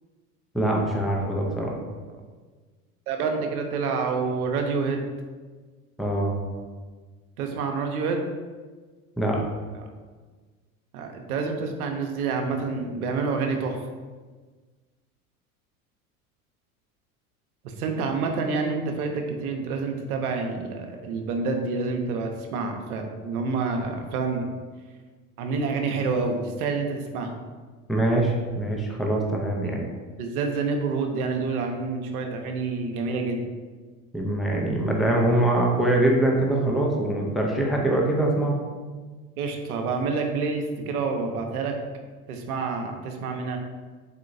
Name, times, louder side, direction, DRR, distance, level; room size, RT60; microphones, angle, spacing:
voice 1, 0.5-1.8 6.0-6.4 9.2-9.4 27.9-29.8 34.1-38.6, right 1 dB, ahead, -1 dB, 0.4 m, -23 dB
voice 2, 1.1-1.9 3.1-5.0 6.5-6.8 7.4-8.2 9.7-9.8 10.9-13.8 17.8-24.5 25.4-27.3 29.6-29.8 30.2-33.4 39.4-41.8 42.3-43.6, right 4 dB, 75° right, 4 dB, 0.8 m, -28 dB
4.2 x 3.7 x 2.6 m, 1.4 s
hypercardioid pair, 85°, 44 cm